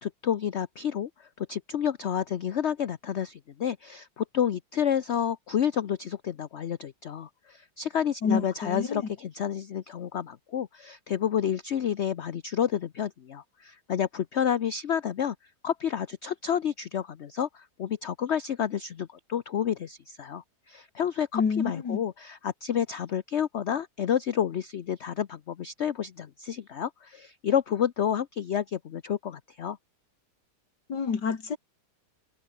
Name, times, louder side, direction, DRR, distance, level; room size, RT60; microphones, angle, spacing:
voice 1, 0.0-15.4 15.6-29.8, left 9 dB, 50° left, 0.9 m, -30 dB
voice 2, 8.2-9.1 21.3-22.0 30.9-31.6, left 5 dB, 85° left, 2.9 m, -28 dB
omnidirectional pair, 1.8 m